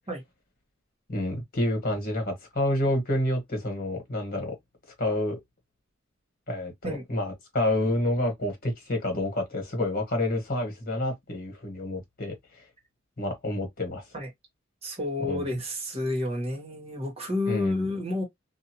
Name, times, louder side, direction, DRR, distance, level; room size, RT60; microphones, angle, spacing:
voice 1, 1.1-4.6 5.0-5.4 6.5-12.4 13.2-14.0 15.3-15.4 17.5-17.9, left 1 dB, 50° left, 1.4 m, -28 dB
voice 2, 14.8-18.2, left 2 dB, 30° right, 1.4 m, -30 dB
2.6 x 2.5 x 2.9 m
head